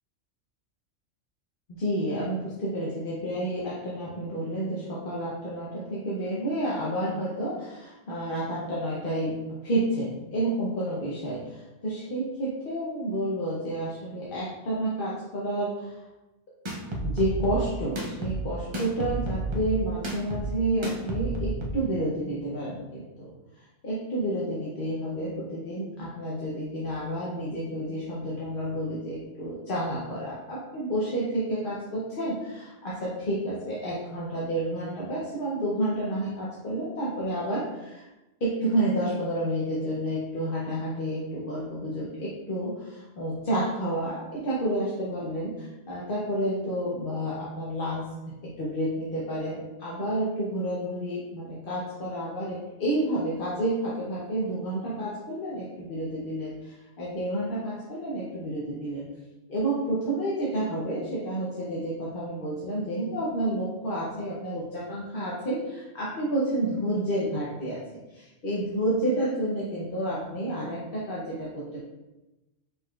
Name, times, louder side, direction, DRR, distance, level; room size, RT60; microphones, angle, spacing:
voice 1, 1.7-16.0 17.0-38.0 38.4-48.2 48.4-59.1 59.5-67.8 68.1-71.8, right 1 dB, 50° left, -7 dB, 1.0 m, -30 dB
sound 1, 16.6-21.7, right 2 dB, 30° right, 0.5 m, -31 dB
5.2 x 4.0 x 2.4 m, 1.0 s
omnidirectional pair, 1.3 m